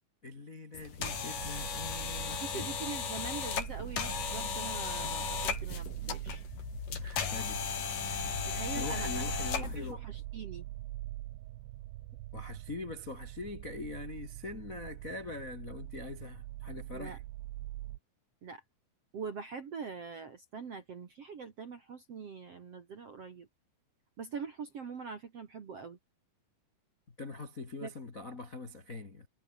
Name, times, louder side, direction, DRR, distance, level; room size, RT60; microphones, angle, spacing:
voice 1, 0.2-2.7 7.0-7.6 8.7-10.1 12.3-17.2 27.2-29.3, left 3 dB, 85° left, 0.7 m, -43 dB
sound 1, 0.7-9.9, left 7 dB, 45° left, 4.3 m, -36 dB
sound 2, 1.0-18.0, right 16 dB, 75° right, 3.1 m, -43 dB
voice 2, 2.4-6.4 8.5-9.2 9.6-10.7 16.9-17.2 18.4-18.6 19.1-23.5 24.2-26.0 27.8-27.9, right 5 dB, 55° right, 1.7 m, -43 dB
omnidirectional pair, 5.8 m